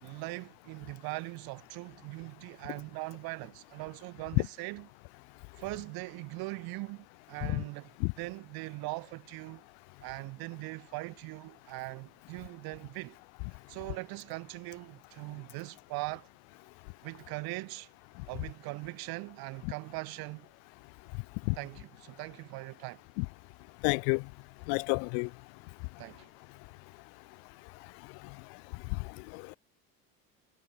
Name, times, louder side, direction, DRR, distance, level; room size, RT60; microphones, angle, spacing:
voice 1, 0.0-4.9 5.6-9.6 10.0-13.2 13.7-16.3 17.0-17.9 18.3-20.5 21.5-23.0 26.0-26.3, right 24 dB, 75° right, 2.2 m, -41 dB
voice 2, 23.8-24.2 24.7-25.3 29.3-29.6, left 40 dB or more, 85° left, 0.5 m, -29 dB
cardioid pair, 110°, 37 cm